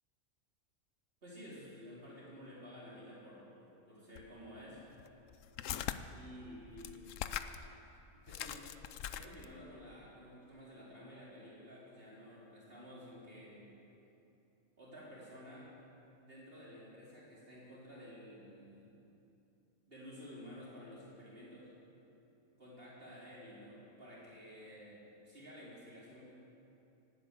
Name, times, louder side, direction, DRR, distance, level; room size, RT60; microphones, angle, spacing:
voice 1, 1.2-4.8 6.1-7.1 8.2-8.7 9.1-13.7 14.8-15.7 16.2-19.0 19.9-21.7 22.6-26.2, equal, 50° right, -7 dB, 4.2 m, -52 dB
sound 1, 4.2-4.3 4.9-6.0 6.7-7.7 8.0-8.1 8.3-9.6, left 10 dB, 85° left, 1.0 m, -41 dB
17.5 x 9.7 x 8.3 m, 2.9 s
omnidirectional pair, 1.3 m